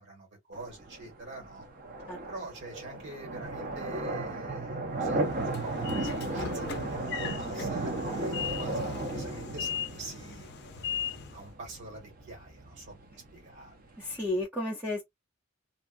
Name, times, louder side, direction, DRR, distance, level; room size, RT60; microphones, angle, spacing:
voice 1, 0.0-1.7 2.3-5.2 5.5-10.5 10.8-10.9 11.3-14.2, right 2 dB, 60° right, 1.7 m, -46 dB
sound 1, 0.5-14.4, right 2 dB, 45° right, 0.7 m, -35 dB
Train / Sliding door, 5.0-11.5, left 8 dB, 55° left, 0.5 m, -38 dB
voice 2, 14.0-15.0, left 1 dB, 5° right, 0.6 m, -32 dB
2.7 x 2.3 x 2.4 m
head